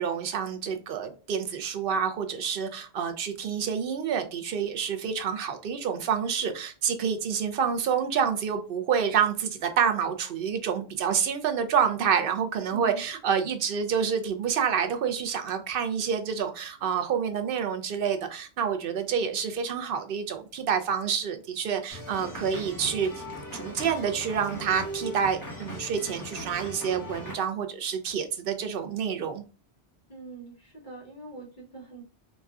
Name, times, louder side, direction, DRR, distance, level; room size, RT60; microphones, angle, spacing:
voice 1, 0.0-23.1 23.5-29.4, right 7 dB, 65° right, 7 dB, 0.7 m, -28 dB
voice 2, 12.7-13.0 30.1-32.0, right 4 dB, 45° left, -4 dB, 1.4 m, -43 dB
sound 1, 21.9-27.4, equal, 20° left, 1.0 m, -39 dB
4.0 x 2.3 x 2.3 m, 0.34 s
omnidirectional pair, 1.1 m